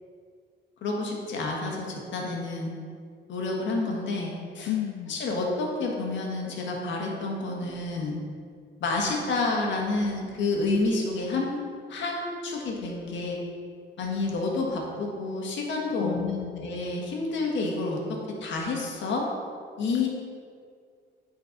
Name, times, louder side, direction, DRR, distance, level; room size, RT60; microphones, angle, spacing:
voice 1, 0.8-2.7 3.3-4.7 5.1-8.2 8.8-11.5 11.9-13.4 14.0-16.3 16.6-18.0 18.4-19.2 19.8-20.1, left 3 dB, 70° left, -1 dB, 1.6 m, -29 dB
voice 2, 4.7-5.2 16.0-16.7, left 13 dB, 85° left, 6 dB, 0.4 m, -32 dB
9.5 x 4.3 x 4.0 m, 2.1 s
cardioid pair, 90°, 20 cm